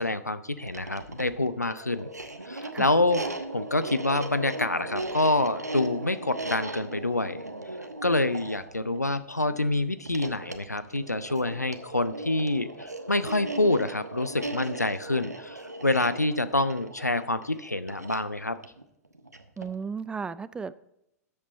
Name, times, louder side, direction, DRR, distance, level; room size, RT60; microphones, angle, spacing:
voice 1, 0.0-2.1 2.5-3.2 3.5-7.4 8.0-18.6, left 2 dB, 90° left, 14 dB, 0.6 m, -27 dB
sound 1, 0.5-19.8, right 2 dB, 85° right, 1.1 m, -38 dB
voice 2, 19.6-20.7, right 5 dB, 10° right, 17 dB, 0.4 m, -34 dB
13.5 x 8.8 x 4.1 m, 0.81 s
figure-of-eight pair, 100°, 9 cm